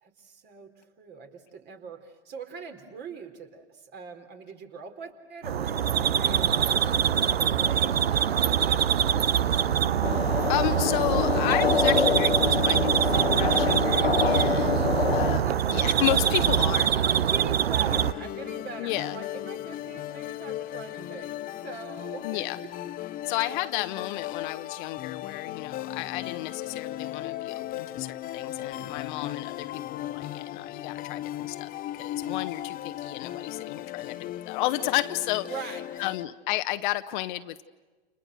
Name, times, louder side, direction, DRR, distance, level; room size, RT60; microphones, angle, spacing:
voice 1, 0.0-6.8 7.2-9.6 14.5-14.9 15.4-15.6 15.8-16.6 17.0-22.4 23.3-23.4 28.8-29.1 35.4-36.0, right 6 dB, 35° right, 5 dB, 4.2 m, -42 dB
sound 1, 5.4-18.1, right 9 dB, 80° right, 0.9 m, -24 dB
sound 2, 10.0-15.4, left 6 dB, 85° left, 1.4 m, -26 dB
voice 2, 10.2-15.4 15.7-16.9 18.8-19.2 22.2-22.6 23.2-35.5 36.0-37.6, left 16 dB, 50° left, 10 dB, 1.3 m, -32 dB
sound 3, 17.8-36.3, left 13 dB, 30° left, 0.9 m, -37 dB
30.0 x 30.0 x 6.5 m, 1.3 s
hypercardioid pair, 100°, 30 cm